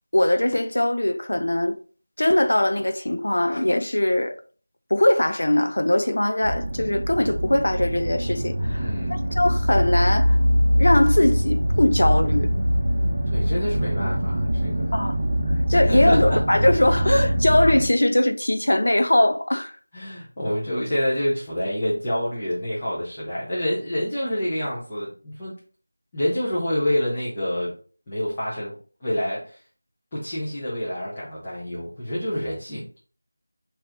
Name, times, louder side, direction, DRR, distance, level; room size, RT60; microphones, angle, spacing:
voice 1, 0.1-1.8 2.2-4.4 4.9-10.4 10.8-12.5 14.9-15.2 15.7-19.8, left 1 dB, 70° left, 0.6 m, -21 dB
sound 1, 6.4-17.9, equal, 35° right, 0.9 m, -23 dB
voice 2, 8.7-9.2 13.2-14.9 15.7-16.4 19.9-25.5 26.1-27.7 28.1-28.7 29.0-29.6 30.1-32.8, equal, 15° left, 1.2 m, -27 dB
4.4 x 2.9 x 3.9 m
figure-of-eight pair, 175°, 0 cm